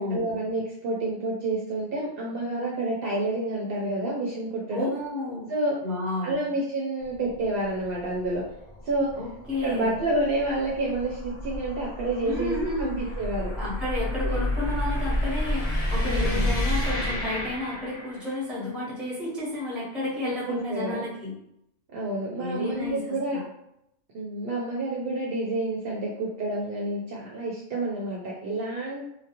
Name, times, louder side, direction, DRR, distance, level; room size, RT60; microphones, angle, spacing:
voice 1, 0.0-4.9 5.5-5.7 6.2-8.4 8.8-9.1 9.6-13.5 14.2-14.4 16.0-16.6 20.2-21.0 21.9-23.4 24.1-29.0, right 2 dB, 65° right, -4 dB, 0.7 m, -29 dB
voice 2, 4.7-5.5 5.8-6.4 9.2-9.9 12.3-12.9 13.6-21.3 22.4-23.4, left 2 dB, ahead, -7 dB, 0.8 m, -31 dB
sound 1, 7.0-18.4, left 1 dB, 50° left, 0.5 m, -30 dB
2.3 x 2.1 x 2.9 m, 0.78 s
omnidirectional pair, 1.2 m